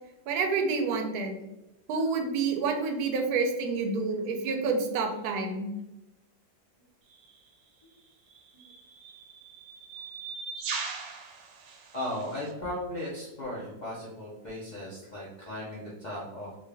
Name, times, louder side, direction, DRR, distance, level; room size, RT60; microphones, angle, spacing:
voice 1, 0.3-1.4 1.9-5.7, right 4 dB, 70° right, 4 dB, 1.0 m, -28 dB
sound 1, 7.1-7.3 8.3-12.5, right 5 dB, 85° right, 1.3 m, -40 dB
voice 2, 11.9-16.6, left 1 dB, 75° left, -7 dB, 0.4 m, -37 dB
3.6 x 2.5 x 3.3 m, 0.96 s
omnidirectional pair, 2.0 m